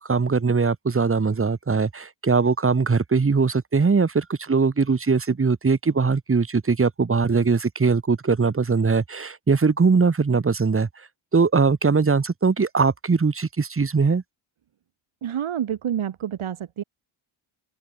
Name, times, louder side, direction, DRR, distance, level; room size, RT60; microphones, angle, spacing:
voice 1, 0.0-10.9 11.3-14.2, right 4 dB, 25° right, 2.7 m, -21 dB
voice 2, 15.2-16.8, right 9 dB, 75° right, 7.7 m, -28 dB
wide cardioid pair, 145°, 50 cm